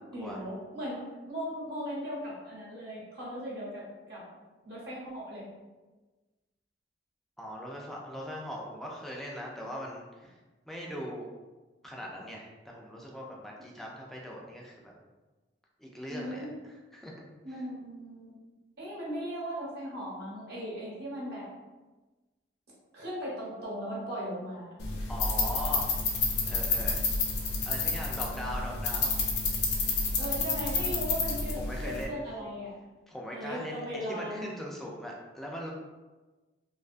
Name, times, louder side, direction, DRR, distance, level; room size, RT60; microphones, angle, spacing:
voice 1, 0.1-4.3 4.6-5.5 16.1-16.6 17.4-18.4 18.8-21.5 22.9-24.7 30.2-32.8 33.3-34.5, equal, 60° right, -6 dB, 0.8 m, -38 dB
voice 2, 7.4-10.4 10.7-11.3 11.8-14.9 15.8-17.1 25.1-25.9 26.5-27.0 27.7-29.2 31.6-32.2 33.1-35.7, equal, ahead, -2 dB, 0.3 m, -40 dB
sound 1, 24.8-32.0, left 3 dB, 65° left, 0.5 m, -30 dB
2.5 x 2.2 x 2.4 m, 1.2 s
head